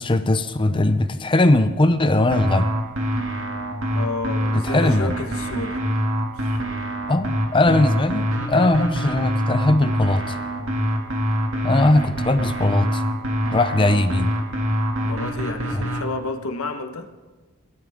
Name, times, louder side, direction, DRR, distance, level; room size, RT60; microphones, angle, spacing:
voice 1, 0.0-2.7 4.6-5.1 7.1-10.4 11.6-13.0 13.5-14.3, left 2 dB, 25° left, 10 dB, 0.6 m, -19 dB
sound 1, 2.3-16.0, equal, 65° right, 2.4 m, -25 dB
voice 2, 3.9-5.8 6.4-6.6 15.0-17.1, left 2 dB, 80° left, 6 dB, 1.3 m, -31 dB
22.0 x 12.5 x 3.7 m, 1.3 s
head